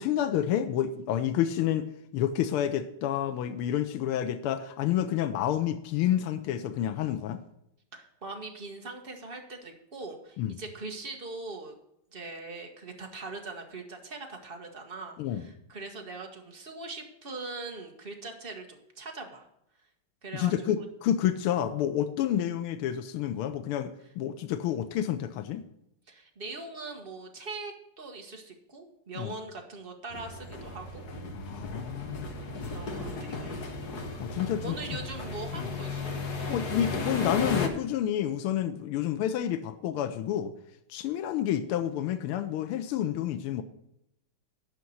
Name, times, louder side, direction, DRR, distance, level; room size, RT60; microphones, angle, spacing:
voice 1, 0.0-7.4 10.4-10.6 15.2-15.5 20.3-25.7 29.2-29.4 31.3-32.3 34.2-34.8 35.5-35.7 36.5-40.5 40.9-43.6, left 10 dB, 85° left, 9 dB, 1.6 m, -29 dB
voice 2, 7.9-11.8 12.1-19.5 20.2-20.8 26.1-31.0 32.7-33.6 34.6-36.9, right 3 dB, 30° right, 3 dB, 1.3 m, -41 dB
sound 1, 30.1-37.7, left 3 dB, 50° left, 1.5 m, -35 dB
9.9 x 5.8 x 7.8 m, 0.77 s
omnidirectional pair, 2.4 m